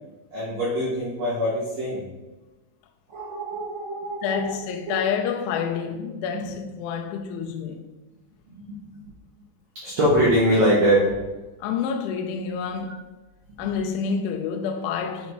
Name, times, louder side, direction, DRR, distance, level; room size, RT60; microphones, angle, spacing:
voice 1, 0.3-2.0 3.1-4.5 4.9-5.0 9.8-11.1, equal, 90° right, 1.4 m, -23 dB
voice 2, 4.2-7.8 11.6-13.0 13.6-15.3, left 6 dB, 90° left, 3.1 m, -28 dB
7.5 x 4.1 x 4.6 m
omnidirectional pair, 5.4 m